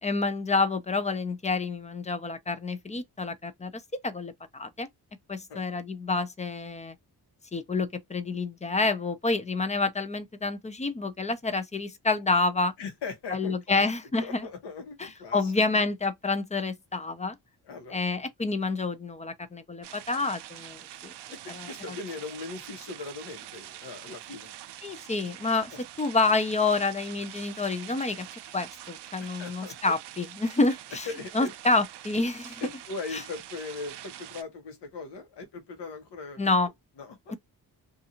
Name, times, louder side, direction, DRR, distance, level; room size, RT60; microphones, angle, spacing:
voice 1, 0.0-4.9 5.3-7.0 7.5-12.7 13.3-14.5 15.0-17.4 17.9-21.1 21.5-22.0 24.8-28.3 28.5-31.1 31.3-32.6 33.1-33.2 36.4-36.7, left 3 dB, 20° left, 0.3 m, -28 dB
voice 2, 12.8-13.9 14.2-15.5 17.7-18.0 21.4-24.5 29.4-29.7 31.1-31.5 32.6-36.4 37.0-37.2, left 4 dB, 90° left, 1.0 m, -39 dB
sound 1, 19.8-34.4, right 13 dB, 80° right, 0.5 m, -45 dB
2.6 x 2.3 x 2.8 m
cardioid pair, 110°, 40 cm